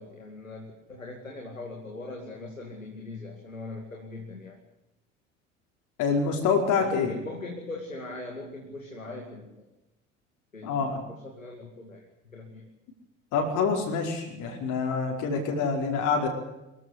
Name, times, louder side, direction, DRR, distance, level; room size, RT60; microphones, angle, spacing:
voice 1, 0.0-4.6 6.8-9.6 10.5-12.0 12.3-12.6, left 2 dB, 90° left, 2 dB, 2.5 m, -40 dB
voice 2, 6.0-7.1 10.6-11.0 13.3-16.3, left 5 dB, 50° left, 2 dB, 5.0 m, -26 dB
24.0 x 14.5 x 8.5 m, 0.92 s
figure-of-eight pair, 65°, 38 cm